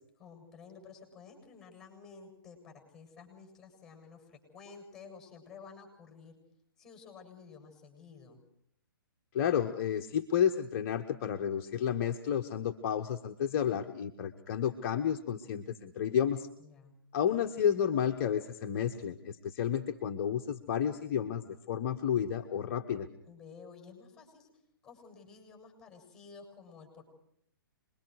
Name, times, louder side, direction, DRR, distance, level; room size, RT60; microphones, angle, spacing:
voice 1, 0.2-6.4 6.8-8.4 16.6-17.0 23.2-24.5 24.8-27.0, left 5 dB, 5° left, 3 dB, 7.5 m, -52 dB
voice 2, 9.3-16.5 17.1-23.1, left 9 dB, 40° left, 4 dB, 1.1 m, -31 dB
27.5 x 22.0 x 4.7 m, 0.68 s
figure-of-eight pair, 130°, 12 cm